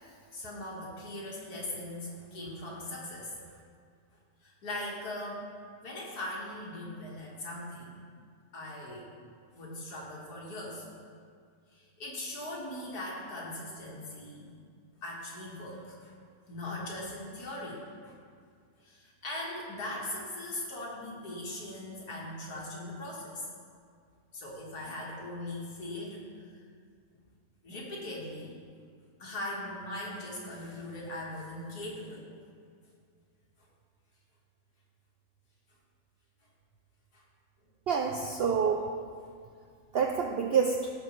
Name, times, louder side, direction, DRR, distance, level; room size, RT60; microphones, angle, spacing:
voice 1, 0.3-3.6 4.4-5.5 5.8-7.9 8.5-9.1 9.5-10.9 11.7-14.5 15.0-16.1 16.5-18.2 18.8-23.4 24.3-26.5 27.6-28.5 29.2-32.3 37.1-37.2, left 1 dB, 85° left, -4 dB, 2.1 m, -40 dB
voice 2, 37.9-38.9 39.9-40.9, right 6 dB, 75° right, 2 dB, 0.5 m, -27 dB
14.5 x 5.2 x 3.2 m, 2.1 s
omnidirectional pair, 1.6 m